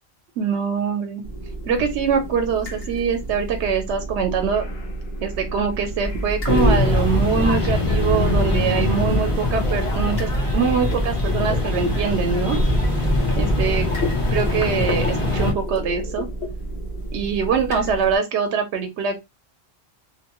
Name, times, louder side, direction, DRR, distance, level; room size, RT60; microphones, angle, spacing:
voice 1, 0.4-1.2 1.6-4.6 5.2-12.6 13.4-13.9 14.3-16.3 17.1-19.2, right 6 dB, 85° right, 6 dB, 0.9 m, -23 dB
sound 1, 1.2-18.2, right 1 dB, 65° left, 1.1 m, -32 dB
sound 2, 6.0-14.6, left 1 dB, ahead, 0.5 m, -29 dB
sound 3, 6.5-15.5, left 1 dB, 35° left, 0.8 m, -22 dB
2.7 x 2.2 x 2.9 m, 0.22 s
omnidirectional pair, 1.1 m